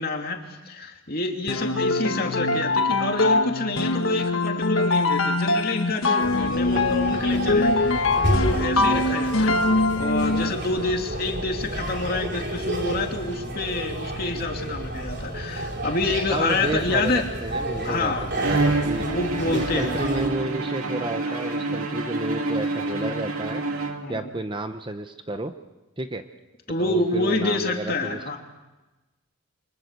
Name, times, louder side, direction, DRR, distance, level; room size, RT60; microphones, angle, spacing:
voice 1, 0.0-9.6 10.0-17.2 17.8-18.3 19.0-20.0 24.0-24.3 26.7-28.4, left 2 dB, 45° left, 3 dB, 2.9 m, -27 dB
sound 1, 1.5-10.7, left 2 dB, 70° left, 1.4 m, -23 dB
sound 2, 6.2-20.3, right 1 dB, 50° right, 4.3 m, -30 dB
voice 2, 16.3-18.1 18.5-19.0 19.5-23.6 24.1-25.5 26.0-26.3 26.8-28.4, right 1 dB, 20° right, 8 dB, 0.9 m, -31 dB
Bowed string instrument, 18.4-24.4, right 2 dB, 90° right, 2.7 m, -27 dB
28.5 x 24.5 x 6.8 m, 1.1 s
head